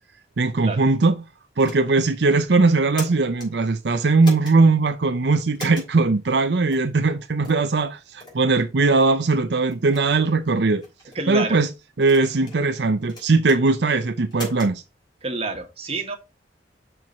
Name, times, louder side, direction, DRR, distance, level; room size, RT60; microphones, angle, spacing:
voice 1, 0.4-1.1 1.6-10.8 11.3-11.7 12.0-14.8, right 3 dB, 75° right, 0.6 m, -19 dB
sound 1, 1.6-2.1 2.7-3.5 4.2-4.6 5.5-5.9 6.7-6.9 7.4-7.7 8.2-8.4 9.0-9.1 9.7-10.0 10.8-11.2 12.0-12.6 13.1-13.6 14.3-14.7, left 2 dB, 25° left, 3.5 m, -38 dB
voice 2, 11.1-11.6 12.6-12.7 15.2-16.2, right 3 dB, 35° right, 1.4 m, -28 dB
6.0 x 4.6 x 5.2 m
head